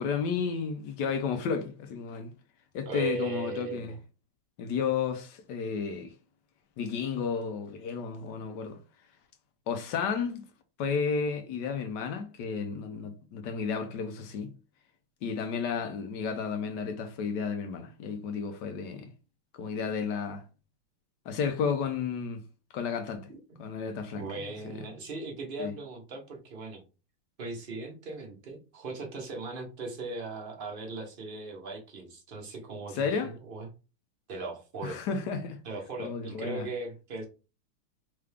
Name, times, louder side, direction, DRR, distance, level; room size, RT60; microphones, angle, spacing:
voice 1, 0.0-2.3 2.7-3.9 4.6-6.1 6.8-8.8 9.7-10.4 10.8-14.5 15.2-19.1 19.6-20.4 21.3-22.4 22.7-23.3 23.6-24.2 24.7-24.8 25.6-25.7 32.9-33.3 34.8-35.6 36.0-36.7, left 6 dB, 70° left, 1.1 m, -32 dB
voice 2, 2.9-4.0 23.3-23.4 24.1-26.8 27.4-33.7 34.3-35.0 35.6-37.3, right 3 dB, 40° right, 0.8 m, -38 dB
3.7 x 3.4 x 3.4 m
omnidirectional pair, 2.4 m